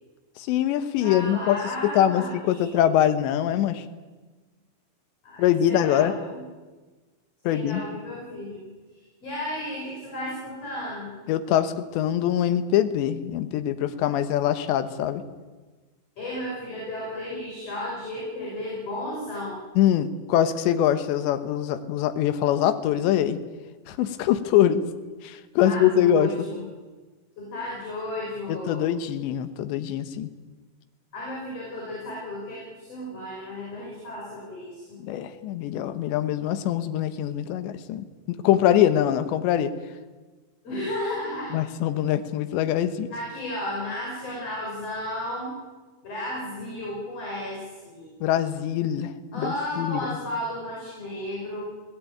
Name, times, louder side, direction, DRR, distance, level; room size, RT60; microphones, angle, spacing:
voice 1, 0.4-3.9 5.4-6.2 7.4-7.8 11.3-15.2 19.8-23.4 23.9-24.8 25.2-26.5 28.5-30.3 35.0-39.7 41.5-43.1 48.2-50.2, left 11 dB, 80° left, 10 dB, 3.4 m, -23 dB
voice 2, 1.0-2.7 5.2-6.3 7.4-8.6 9.2-11.1 16.2-19.5 25.6-26.6 27.4-28.8 31.1-35.0 40.6-41.5 43.1-45.5 46.0-48.1 49.3-51.6, left 1 dB, 35° left, -4 dB, 6.7 m, -33 dB
23.0 x 17.5 x 9.2 m, 1.3 s
omnidirectional pair, 5.2 m